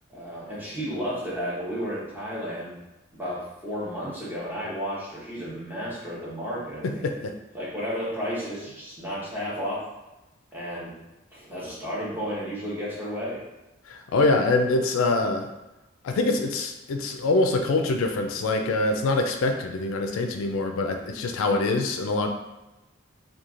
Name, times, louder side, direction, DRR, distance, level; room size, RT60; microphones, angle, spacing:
voice 1, 0.1-2.8 3.1-7.1 7.5-9.9 10.5-10.9 11.3-13.4, equal, 10° right, -8 dB, 0.8 m, -32 dB
voice 2, 6.8-7.3 13.9-15.5 16.0-22.3, left 2 dB, 80° left, 4 dB, 0.3 m, -24 dB
3.0 x 2.3 x 2.4 m, 1.0 s
head